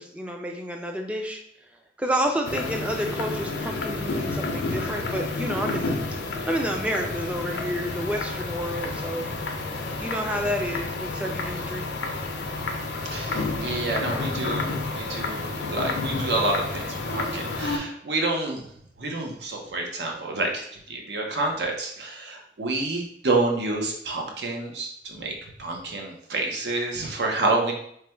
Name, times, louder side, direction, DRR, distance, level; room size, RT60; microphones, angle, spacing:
voice 1, 0.0-1.4 2.0-6.0 6.5-9.3 10.0-11.9, equal, 5° right, 2 dB, 0.4 m, -29 dB
sound 1, 2.4-17.8, left 3 dB, 80° left, 0.5 m, -30 dB
voice 2, 13.1-18.6 19.0-27.7, right 2 dB, 75° right, 1 dB, 0.7 m, -28 dB
3.2 x 2.2 x 4.3 m, 0.70 s
head